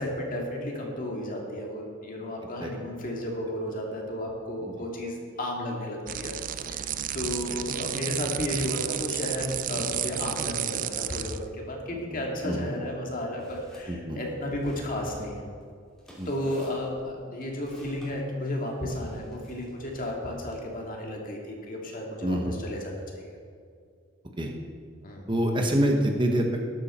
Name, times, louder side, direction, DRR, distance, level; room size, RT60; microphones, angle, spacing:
voice 1, 0.0-15.5 16.3-23.4 25.0-25.3, left 1 dB, 45° left, 0 dB, 2.2 m, -33 dB
sound 1, 6.1-11.4, right 11 dB, 45° right, 0.4 m, -32 dB
voice 2, 11.9-12.7 13.9-14.3 16.2-16.3 22.2-22.5 24.4-24.5 25.3-26.6, right 1 dB, 25° right, 2 dB, 1.2 m, -27 dB
sound 2, 13.4-13.9 14.2-18.1 18.8-20.4, equal, ahead, 3.2 m, -51 dB
12.5 x 11.5 x 4.4 m, 2.3 s
head